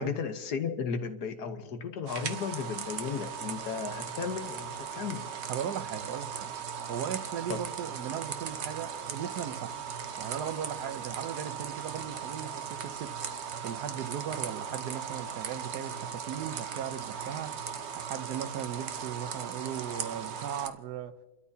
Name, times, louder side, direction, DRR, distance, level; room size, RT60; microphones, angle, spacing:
voice 1, 0.0-5.2 7.5-7.6, left 6 dB, 85° left, 1.7 m, -34 dB
sound 1, 2.1-20.7, right 7 dB, 50° right, 1.0 m, -38 dB
voice 2, 5.5-6.5 6.9-9.8 10.2-13.2 13.6-17.6 17.9-21.2, right 9 dB, 90° right, 1.4 m, -37 dB
30.0 x 13.0 x 2.8 m
omnidirectional pair, 1.7 m